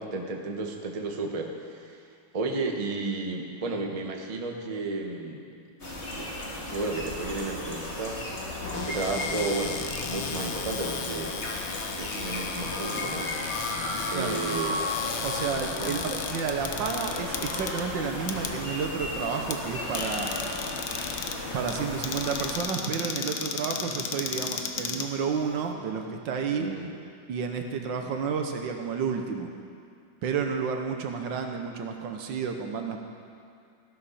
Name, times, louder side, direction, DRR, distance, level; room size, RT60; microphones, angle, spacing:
voice 1, 0.0-2.0 2.3-5.5 5.9-6.3 6.6-8.3 8.7-11.4 12.0-13.8 14.1-15.2 15.8-15.9 26.6-26.9, right 3 dB, 25° right, 2 dB, 0.8 m, -33 dB
sound 1, 5.8-22.6, left 1 dB, 35° left, 2.0 m, -34 dB
Cupboard open or close, 8.7-25.7, left 7 dB, 80° left, 1.5 m, -36 dB
voice 2, 15.2-20.4 21.5-26.7 27.3-29.5 30.2-33.0, right 6 dB, 80° right, 4 dB, 1.7 m, -31 dB
15.5 x 12.0 x 4.3 m, 2.4 s
omnidirectional pair, 2.0 m